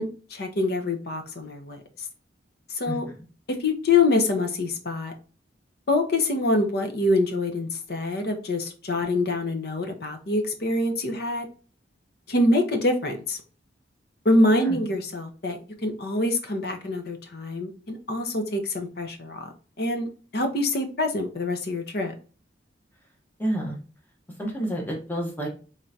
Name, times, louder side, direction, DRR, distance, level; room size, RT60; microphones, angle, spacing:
voice 1, 0.0-1.8 2.7-3.1 3.5-5.1 5.9-11.5 12.3-13.4 14.2-19.5 19.8-20.1 20.3-22.1, left 2 dB, 55° left, 6 dB, 0.7 m, -25 dB
voice 2, 23.4-23.8 24.4-25.5, right 1 dB, 10° left, 0 dB, 0.9 m, -29 dB
3.6 x 3.3 x 2.7 m, 0.37 s
head